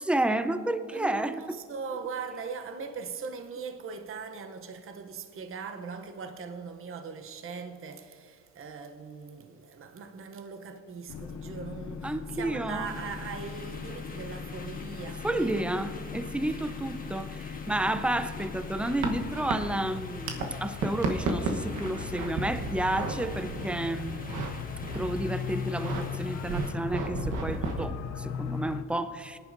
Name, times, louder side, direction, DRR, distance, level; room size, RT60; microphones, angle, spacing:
voice 1, 0.0-1.4 12.0-12.9 15.2-24.2 24.9-29.4, right 1 dB, 5° right, 0.5 m, -31 dB
voice 2, 0.9-15.7 16.0-16.1, right 5 dB, 45° right, 0.8 m, -40 dB
sound 1, 11.1-28.8, left 7 dB, 65° left, 0.7 m, -39 dB
sound 2, 12.8-26.7, left 3 dB, 30° left, 1.5 m, -47 dB
sound 3, 17.7-20.5 20.7-24.5 24.8-25.2 25.6-26.0 26.5-27.9, right 4 dB, 85° right, 1.2 m, -34 dB
19.0 x 10.5 x 2.7 m
cardioid pair, 90°, 30 cm